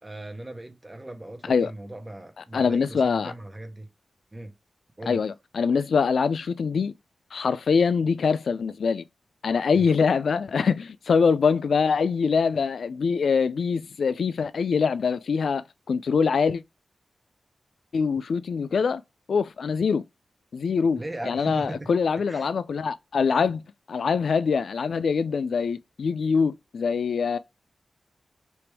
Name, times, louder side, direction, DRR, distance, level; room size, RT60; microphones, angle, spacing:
voice 1, 0.0-3.9 4.3-4.5 5.0-5.2 9.7-9.9 20.9-21.9 22.3-22.5, right 1 dB, 20° right, 1.0 m, -38 dB
voice 2, 2.5-3.3 5.1-6.9 7.3-9.0 9.4-16.6 17.9-19.0 19.3-20.0 20.5-27.4, left 5 dB, 80° left, 0.3 m, -24 dB
3.4 x 2.9 x 4.6 m
wide cardioid pair, 130°, 0 cm